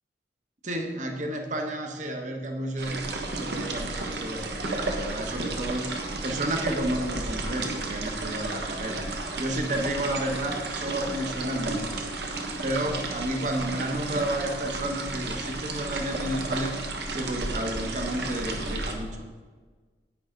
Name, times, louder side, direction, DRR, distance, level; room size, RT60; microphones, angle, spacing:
voice 1, 0.6-5.9 6.2-9.0 9.4-12.0 12.6-16.8 17.1-19.2, right 1 dB, 40° right, 3 dB, 1.1 m, -31 dB
sound 1, 2.8-18.9, right 2 dB, 70° right, 1.3 m, -33 dB
11.0 x 9.0 x 3.9 m, 1.4 s
head